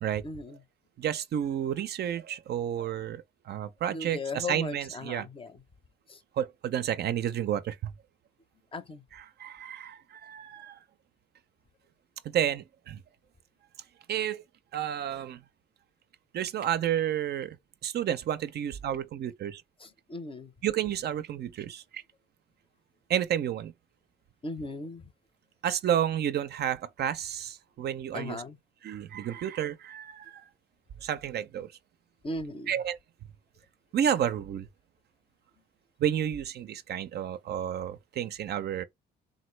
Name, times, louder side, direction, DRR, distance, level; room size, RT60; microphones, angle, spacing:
voice 1, 0.2-0.6 3.9-5.6 6.1-6.2 8.7-9.0 19.8-20.5 24.4-25.1 28.1-28.6 32.2-32.7, left 3 dB, 25° left, 0.6 m, -37 dB
voice 2, 1.0-5.3 6.4-7.9 9.1-10.8 12.2-13.0 14.1-14.4 14.7-15.4 16.3-17.6 17.8-19.6 20.6-22.0 23.1-23.7 25.6-28.4 28.8-30.4 31.0-31.7 32.7-33.0 33.9-34.7 36.0-38.8, right 10 dB, 55° right, 0.4 m, -31 dB
3.8 x 2.0 x 3.1 m
cardioid pair, 90°, 20 cm